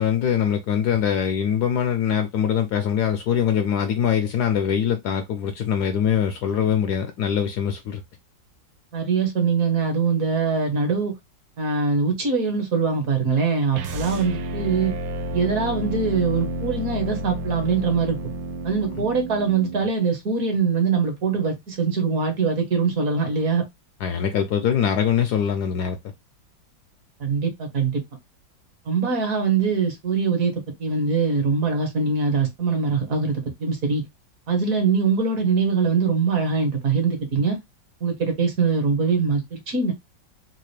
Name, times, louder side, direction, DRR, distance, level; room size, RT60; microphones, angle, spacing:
voice 1, 0.0-8.0 18.9-19.1 24.0-26.0, left 8 dB, 75° left, 1.0 m, -23 dB
voice 2, 8.9-11.1 11.6-14.9 15.3-18.2 18.6-23.7 27.2-28.0 28.9-34.0 34.5-37.6 38.0-39.9, right 5 dB, 55° right, 1.2 m, -23 dB
sound 1, 13.7-19.9, right 1 dB, 80° right, 1.4 m, -31 dB
4.0 x 2.4 x 3.1 m
omnidirectional pair, 2.1 m